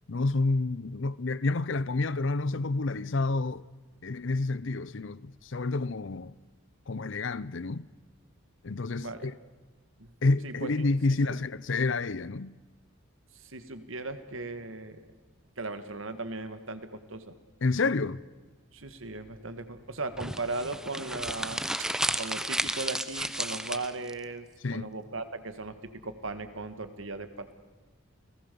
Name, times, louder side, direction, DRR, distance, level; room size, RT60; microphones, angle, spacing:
voice 1, 0.1-3.6 4.0-6.3 6.9-7.9 8.6-9.3 10.2-12.5 17.6-18.2 24.6-24.9, left 3 dB, 60° left, 0.6 m, -29 dB
voice 2, 9.0-9.3 10.0-10.1 10.4-10.7 11.3-11.4 13.3-15.0 15.6-17.3 18.7-21.9 22.1-27.5, right 3 dB, 70° right, 1.8 m, -37 dB
sound 1, 20.1-24.1, right 1 dB, 5° right, 0.7 m, -32 dB
30.0 x 19.0 x 7.0 m
head